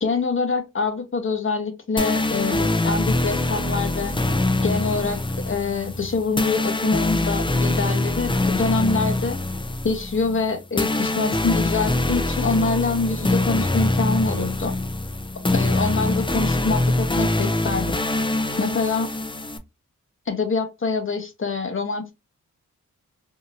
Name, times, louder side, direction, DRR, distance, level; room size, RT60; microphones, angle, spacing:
voice 1, 0.0-4.2 4.6-5.2 5.5-9.4 9.8-14.7 15.5-18.0 18.6-19.1 20.3-22.1, left 4 dB, 40° left, 5 dB, 0.9 m, -25 dB
sound 1, 2.0-19.6, left 2 dB, 15° left, 0.5 m, -24 dB
2.8 x 2.7 x 2.5 m, 0.24 s
cardioid pair, 70°, 32 cm